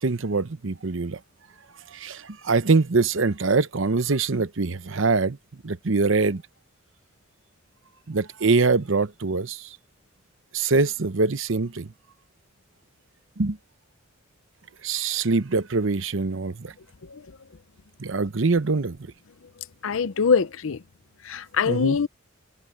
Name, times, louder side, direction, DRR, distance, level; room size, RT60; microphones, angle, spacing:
voice 1, 0.0-1.2 1.9-5.4 5.6-6.4 8.1-9.8 10.5-11.9 13.4-13.6 14.8-16.7 18.0-19.0 21.7-22.0, right 3 dB, 70° right, 0.9 m, -23 dB
voice 2, 17.0-17.4 19.4-19.5 19.8-20.8 21.2-22.1, left 5 dB, 80° left, 0.6 m, -24 dB
head